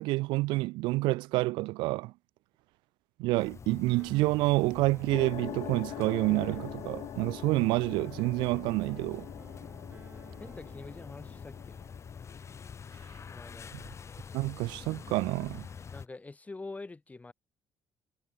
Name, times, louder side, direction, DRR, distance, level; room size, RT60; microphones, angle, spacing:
voice 1, 0.0-2.1 3.2-9.3 14.3-15.7, right 21 dB, 90° right, 0.5 m, -28 dB
sound 1, 3.4-16.1, left 6 dB, 35° left, 1.6 m, -47 dB
sound 2, 3.9-11.9, right 3 dB, 25° right, 3.3 m, -55 dB
sound 3, 5.1-13.8, left 13 dB, 70° left, 1.0 m, -44 dB
voice 2, 10.4-11.8 13.3-13.7 15.9-17.3, left 3 dB, 20° left, 2.7 m, -45 dB
cardioid pair, 90°, 8 cm